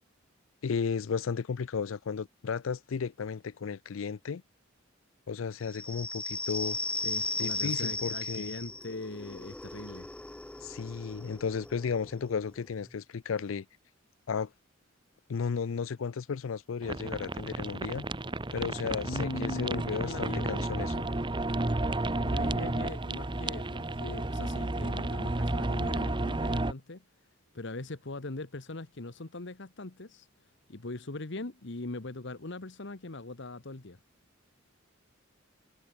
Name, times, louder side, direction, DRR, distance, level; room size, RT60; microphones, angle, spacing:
voice 1, 0.6-4.4 5.3-6.8 7.4-8.5 10.6-13.7 14.3-14.5 15.3-18.1 18.5-20.9, left 6 dB, 75° left, 0.5 m, -34 dB
sound 1, 5.6-12.9, left 2 dB, 5° left, 0.4 m, -37 dB
voice 2, 6.9-10.1 19.0-20.8 22.2-27.0 27.5-30.3 30.7-34.0, left 2 dB, 60° left, 1.3 m, -40 dB
sound 2, 16.8-26.7, right 2 dB, 25° right, 1.0 m, -32 dB
head